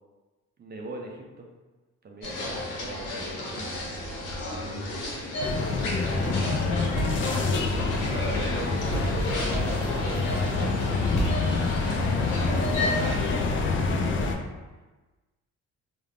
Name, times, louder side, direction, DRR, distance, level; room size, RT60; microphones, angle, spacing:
voice 1, 0.6-1.5 2.0-3.6 8.0-11.1, right 2 dB, 35° right, 0 dB, 0.4 m, -40 dB
sound 1, 2.2-13.2, left 1 dB, 90° left, 0.7 m, -32 dB
voice 2, 4.6-7.7 12.0-13.7, left 1 dB, 60° left, -3 dB, 0.8 m, -41 dB
sound 2, 5.4-14.3, left 4 dB, 40° left, 0.4 m, -27 dB
Thump thud, 6.9-7.5 8.9-9.3 11.1-11.8, equal, 20° left, 1.1 m, -31 dB
2.4 x 2.0 x 3.3 m, 1.2 s
cardioid pair, 90°, 30 cm